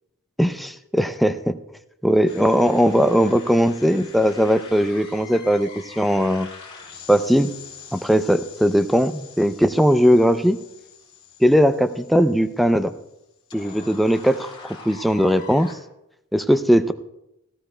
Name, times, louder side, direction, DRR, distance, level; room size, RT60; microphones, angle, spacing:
voice 1, 0.4-1.6 2.0-6.5 7.1-7.5 7.9-10.6 11.4-12.9 13.5-15.8 16.3-16.9, equal, ahead, 9 dB, 0.4 m, -19 dB
sound 1, 2.3-15.7, left 5 dB, 25° left, 3.1 m, -44 dB
18.0 x 15.0 x 2.2 m, 0.88 s
head